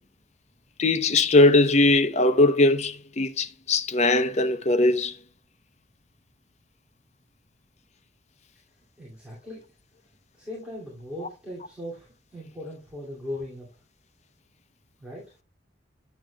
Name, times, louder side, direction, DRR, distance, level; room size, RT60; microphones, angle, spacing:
voice 1, 0.8-5.2, left 2 dB, 40° left, 0.6 m, -20 dB
voice 2, 9.0-9.6 10.3-13.7 15.0-15.4, left 1 dB, 5° right, 2.4 m, -38 dB
9.2 x 7.3 x 2.2 m
head